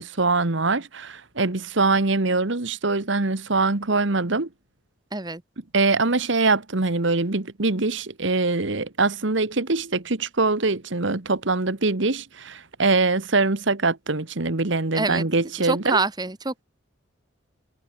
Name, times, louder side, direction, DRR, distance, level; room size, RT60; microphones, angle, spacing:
voice 1, 0.0-4.5 5.7-16.0, right 3 dB, 65° right, 1.4 m, -23 dB
voice 2, 5.1-5.4 14.9-15.3 15.6-16.6, right 3 dB, 20° right, 1.2 m, -26 dB
head